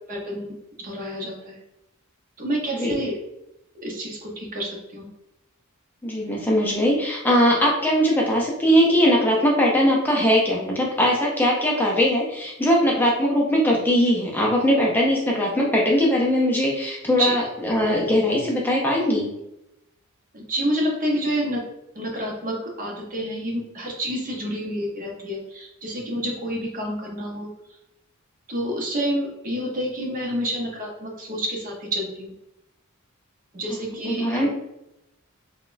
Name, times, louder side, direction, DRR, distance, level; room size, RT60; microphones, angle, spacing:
voice 1, 0.1-1.6 2.4-3.2 3.7-5.1 17.2-17.3 20.3-21.6 21.9-27.5 28.5-32.3 33.5-34.5, equal, 40° right, -1 dB, 0.7 m, -28 dB
voice 2, 6.0-19.3 33.7-34.5, equal, 10° left, -3 dB, 0.4 m, -20 dB
4.0 x 2.2 x 2.5 m, 0.88 s
head